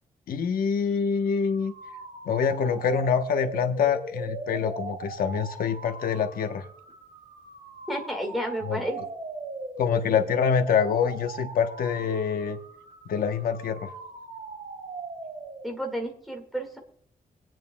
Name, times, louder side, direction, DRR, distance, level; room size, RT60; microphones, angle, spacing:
voice 1, 0.3-1.7 2.2-6.6 8.7-8.8 9.8-12.6 13.1-13.9, left 6 dB, 85° left, 6 dB, 1.0 m, -25 dB
sound 1, 1.2-15.9, right 3 dB, 50° right, 3.2 m, -39 dB
voice 2, 7.9-9.0 15.6-16.8, equal, ahead, 2 dB, 1.9 m, -31 dB
24.5 x 9.1 x 2.3 m, 0.62 s
wide cardioid pair, 180°, 15 cm